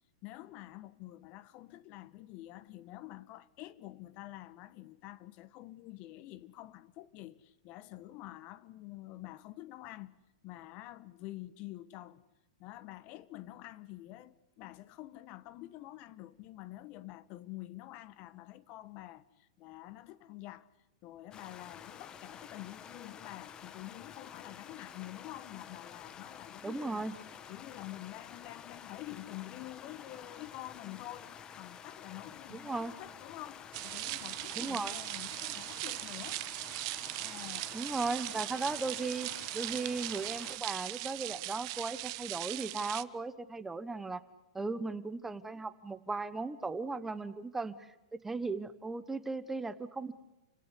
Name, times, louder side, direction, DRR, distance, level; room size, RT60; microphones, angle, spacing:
voice 1, 0.2-10.2 10.4-12.2 12.6-20.7 21.0-27.1 27.5-36.5 37.2-37.8, left 16 dB, 40° left, 1.3 m, -48 dB
sound 1, 21.3-40.6, left 8 dB, 25° left, 1.6 m, -50 dB
voice 2, 26.6-27.1 32.5-32.9 34.6-35.0 37.7-44.2 44.5-50.1, right 3 dB, 10° right, 1.2 m, -37 dB
sound 2, 33.7-43.0, right 21 dB, 50° right, 1.0 m, -39 dB
29.5 x 17.0 x 9.9 m
hypercardioid pair, 135°, 3 cm